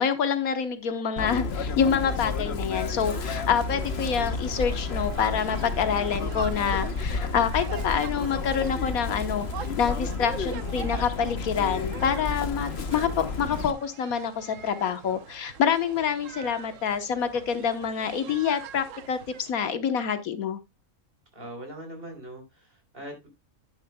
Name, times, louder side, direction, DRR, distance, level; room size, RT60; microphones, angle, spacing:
voice 1, 0.0-9.5 9.8-20.6, left 7 dB, 85° left, 1.5 m, -27 dB
Chirp tweet, 1.2-13.7, left 4 dB, 50° left, 1.1 m, -31 dB
sound 1, 2.7-19.5, right 8 dB, 70° right, 1.1 m, -44 dB
voice 2, 21.3-23.3, right 1 dB, 40° right, 4.0 m, -41 dB
10.5 x 10.0 x 2.2 m
omnidirectional pair, 1.5 m